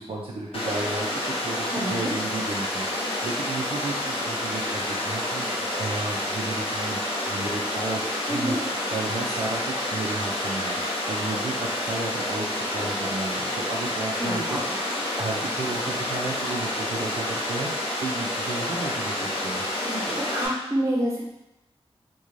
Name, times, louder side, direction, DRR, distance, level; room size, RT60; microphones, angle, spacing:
voice 1, 0.0-7.0 7.3-8.6 8.9-14.8 15.2-17.7 18.0-19.1 19.4-19.6, right 2 dB, 65° right, -3 dB, 0.3 m, -33 dB
Water, 0.5-20.5, left 1 dB, 65° left, 0.6 m, -29 dB
voice 2, 1.7-2.1 8.3-8.6 14.2-14.7 19.8-21.2, right 1 dB, 30° right, -4 dB, 0.7 m, -28 dB
2.4 x 2.2 x 3.0 m, 0.88 s
wide cardioid pair, 90°, 10 cm